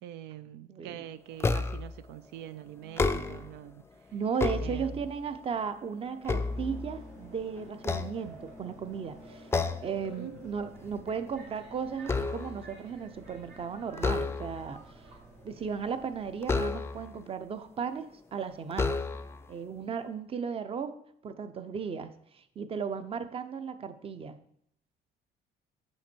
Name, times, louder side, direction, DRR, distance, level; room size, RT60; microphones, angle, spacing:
voice 1, 0.0-3.8 4.6-5.0 10.1-10.4, right 12 dB, 90° right, 0.4 m, -44 dB
voice 2, 0.7-1.1 4.1-9.5 9.8-14.8 15.4-19.0 19.5-20.9 21.2-24.4, right 6 dB, 35° right, 0.7 m, -35 dB
sound 1, 1.4-2.0 2.8-3.6 4.1-5.2 5.7-7.2 7.8-8.8 9.5-10.0 10.4-10.6 11.0-12.7 13.9-14.8 16.4-17.2 18.0-18.1 18.7-19.5, left 3 dB, 15° left, 0.4 m, -31 dB
Subway metro underground, 6.2-17.0, right 1 dB, 65° right, 2.9 m, -51 dB
7.6 x 5.7 x 4.5 m
cardioid pair, 110°, 17 cm